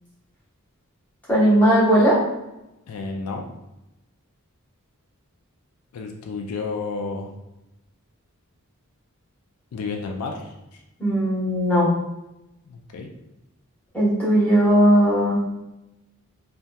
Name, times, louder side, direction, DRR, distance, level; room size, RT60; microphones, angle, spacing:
voice 1, 1.3-2.2 11.0-11.9 13.9-15.6, equal, 5° left, -9 dB, 0.9 m, -18 dB
voice 2, 2.9-3.5 5.9-7.3 9.7-10.8 12.6-13.1, left 4 dB, 80° left, 2 dB, 0.3 m, -31 dB
2.7 x 2.2 x 2.2 m, 0.93 s
head